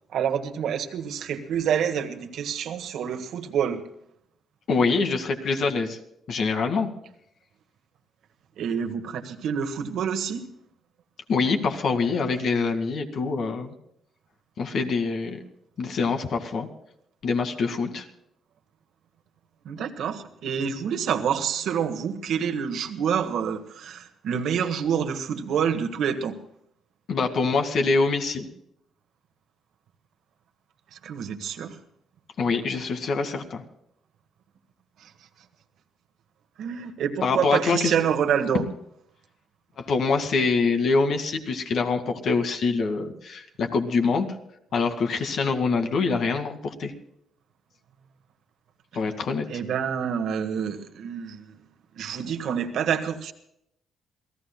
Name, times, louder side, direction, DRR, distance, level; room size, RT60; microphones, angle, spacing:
voice 1, 0.1-3.8 8.6-10.4 19.6-26.4 31.0-31.8 35.0-35.1 36.6-38.6 49.5-51.6 51.9-53.3, right 8 dB, 75° right, 6 dB, 1.6 m, -27 dB
voice 2, 4.7-6.0 6.3-6.9 11.3-13.7 14.6-15.4 15.8-16.7 17.2-18.1 27.1-28.5 32.4-33.6 37.2-37.9 39.8-44.3 44.7-46.9 48.9-49.5, left 4 dB, 60° left, 5 dB, 2.1 m, -25 dB
28.0 x 16.5 x 2.3 m, 0.75 s
cardioid pair, 90°, 0 cm